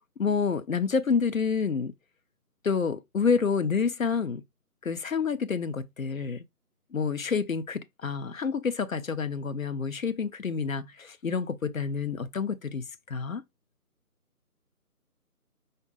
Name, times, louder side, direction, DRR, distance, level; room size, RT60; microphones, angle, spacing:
voice 1, 0.2-1.9 2.6-4.4 4.8-6.4 6.9-13.4, left 5 dB, 60° left, 0.5 m, -28 dB
5.2 x 2.0 x 3.8 m
figure-of-eight pair, 155°, 47 cm